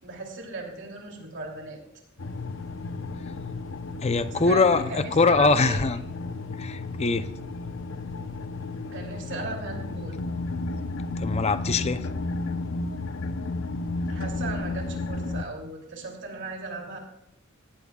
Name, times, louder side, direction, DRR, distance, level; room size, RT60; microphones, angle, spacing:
voice 1, 0.0-1.8 4.3-5.9 8.9-10.1 14.1-17.0, right 3 dB, 60° right, 0 dB, 2.9 m, -37 dB
sound 1, 2.2-15.4, left 3 dB, 65° left, 0.8 m, -33 dB
voice 2, 4.0-6.0 6.6-7.3 11.2-12.0, left 3 dB, 30° left, 12 dB, 0.6 m, -22 dB
18.5 x 15.5 x 2.4 m, 0.83 s
head